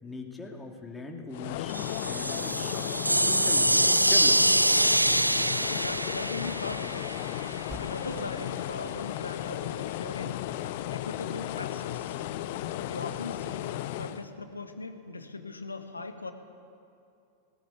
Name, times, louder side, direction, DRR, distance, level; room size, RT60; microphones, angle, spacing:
voice 1, 0.0-4.6, left 2 dB, 10° left, 1 dB, 2.7 m, -41 dB
sound 1, 1.3-14.2, left 13 dB, 50° left, 0.8 m, -35 dB
sound 2, 1.7-7.6, right 1 dB, 85° right, 0.6 m, -25 dB
sound 3, 4.8-5.6 5.8-6.3 6.6-6.7 7.2-8.4 8.7-8.8 9.3-9.5, right 1 dB, 15° right, 2.8 m, -48 dB
voice 2, 5.7-7.2 7.8-10.4 10.9-12.2 12.8-13.7 14.0-16.3, left 3 dB, 80° left, 7 dB, 1.6 m, -39 dB
19.0 x 18.5 x 8.4 m, 2.5 s
figure-of-eight pair, 90°, 0 cm